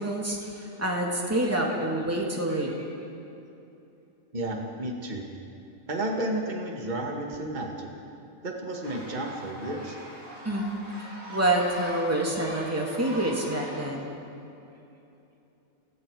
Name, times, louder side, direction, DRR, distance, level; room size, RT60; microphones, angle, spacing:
voice 1, 0.0-2.8 10.4-10.7 11.3-14.2, right 1 dB, 10° right, -2 dB, 2.8 m, -27 dB
voice 2, 4.3-5.2 5.9-7.9 8.4-10.0, right 1 dB, 30° right, 0 dB, 2.1 m, -32 dB
sound 1, 8.8-13.9, equal, 65° right, 7.8 m, -41 dB
29.5 x 19.5 x 4.9 m, 2.8 s
omnidirectional pair, 1.5 m